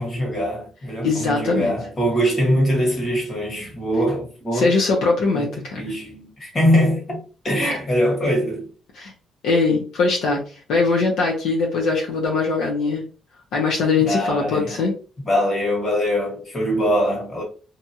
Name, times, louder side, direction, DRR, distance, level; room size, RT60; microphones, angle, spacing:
voice 1, 0.0-4.7 5.3-5.5 5.8-7.2 7.4-8.7 14.0-14.8 15.2-17.4, equal, 35° left, 1.5 m, -22 dB
voice 2, 1.0-1.7 4.5-5.8 8.9-9.1 9.4-10.4 10.7-13.0 13.5-14.9, left 4 dB, 85° left, 0.7 m, -21 dB
2.8 x 2.4 x 2.7 m
cardioid pair, 90°, 0 cm